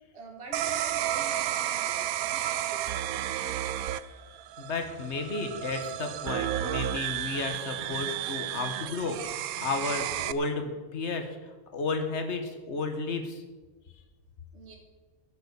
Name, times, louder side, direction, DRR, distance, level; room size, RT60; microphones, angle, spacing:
voice 1, 0.1-3.1 14.5-14.8, right 2 dB, 50° right, 2 dB, 2.1 m, -46 dB
sound 1, 0.5-10.3, right 12 dB, 90° right, 1.1 m, -32 dB
voice 2, 4.6-11.3 11.7-13.4, left 3 dB, 55° left, 5 dB, 1.7 m, -33 dB
15.5 x 7.5 x 7.0 m, 1.3 s
omnidirectional pair, 1.5 m